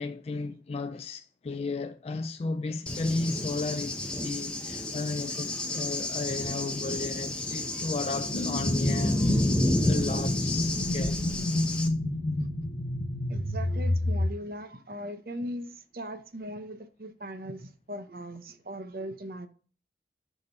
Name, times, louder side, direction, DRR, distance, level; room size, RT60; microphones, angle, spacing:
voice 1, 0.0-9.2 9.8-11.2, left 3 dB, 35° left, 0.3 m, -34 dB
Cricket / Thunder, 2.9-11.9, left 1 dB, 5° left, 0.8 m, -30 dB
sound 1, 8.3-14.3, left 1 dB, 85° left, 0.9 m, -30 dB
voice 2, 13.3-19.5, equal, 55° right, 0.8 m, -39 dB
6.5 x 5.0 x 5.5 m
head